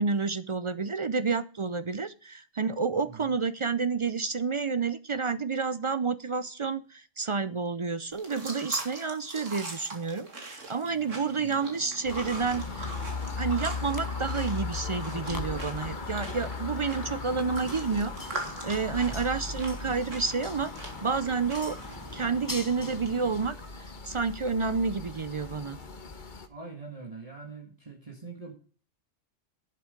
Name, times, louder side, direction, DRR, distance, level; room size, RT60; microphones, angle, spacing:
voice 1, 0.0-12.9 13.4-20.7 21.0-21.8 22.1-23.5 24.0-25.8, right 5 dB, 50° right, 14 dB, 0.3 m, -30 dB
voice 2, 3.0-3.4 11.3-11.6 19.0-19.3 26.5-28.5, right 4 dB, 30° right, 0 dB, 1.8 m, -44 dB
sound 1, 8.1-22.1, right 2 dB, 80° right, 2.7 m, -43 dB
sound 2, 10.8-23.5, left 1 dB, 15° left, 1.0 m, -45 dB
sound 3, 12.0-26.5, left 4 dB, 40° left, 1.3 m, -38 dB
11.5 x 7.6 x 5.1 m, 0.40 s
omnidirectional pair, 1.3 m